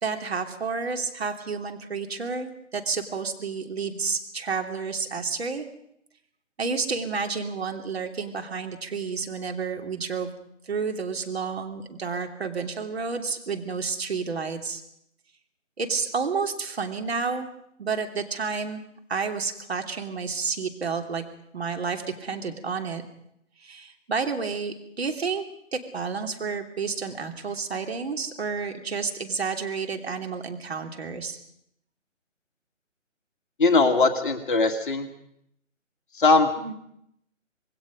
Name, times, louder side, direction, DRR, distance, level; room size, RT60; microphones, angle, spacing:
voice 1, 0.0-5.6 6.6-10.3 10.7-14.8 15.8-17.5 17.8-18.8 19.1-21.2 21.5-23.0 23.6-25.4 25.7-31.4 36.6-36.7, right 5 dB, 50° right, 5 dB, 3.0 m, -30 dB
voice 2, 33.6-35.1 36.1-36.5, left 3 dB, 40° left, 5 dB, 2.0 m, -20 dB
26.0 x 20.5 x 5.3 m, 0.74 s
figure-of-eight pair, 150°, 39 cm